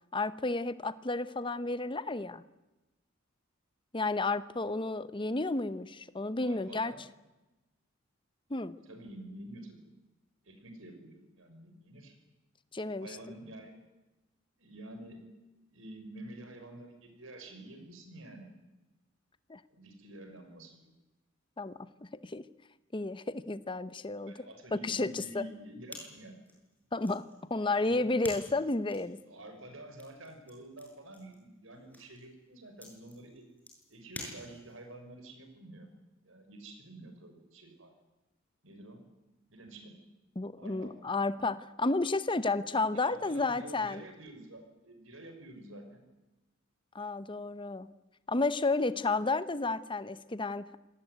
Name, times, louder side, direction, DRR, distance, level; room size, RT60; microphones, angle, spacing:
voice 1, 0.1-2.4 3.9-6.9 8.5-8.8 12.7-13.1 19.5-19.6 21.6-22.5 22.9-25.4 26.9-29.2 40.4-44.0 46.9-47.9 48.3-50.8, left 3 dB, 25° left, 14 dB, 0.9 m, -32 dB
voice 2, 6.4-7.0 8.9-9.8 10.4-12.2 13.0-13.8 14.6-15.3 15.7-18.5 19.7-20.9 24.3-26.3 27.8-28.0 29.3-33.4 33.9-35.9 36.2-37.9 38.6-39.0 39.5-40.0 40.6-41.0 42.9-46.0, right 1 dB, 70° right, 6 dB, 6.1 m, -49 dB
sound 1, 25.9-34.9, left 1 dB, 10° left, 7.5 m, -50 dB
27.0 x 19.0 x 9.4 m, 1.1 s
head